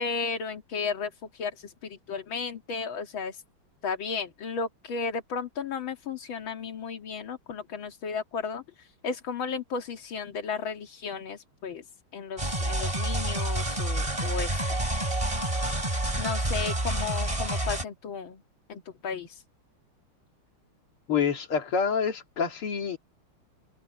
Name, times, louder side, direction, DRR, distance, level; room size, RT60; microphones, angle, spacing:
voice 1, 0.0-1.7 2.1-3.4 3.8-8.6 9.0-11.8 12.1-14.6 16.2-18.4 18.7-19.4, left 5 dB, 65° left, 2.7 m, -34 dB
sound 1, 12.4-17.8, right 1 dB, 15° right, 3.1 m, -28 dB
voice 2, 21.1-23.0, left 6 dB, 85° left, 3.3 m, -27 dB
omnidirectional pair, 2.3 m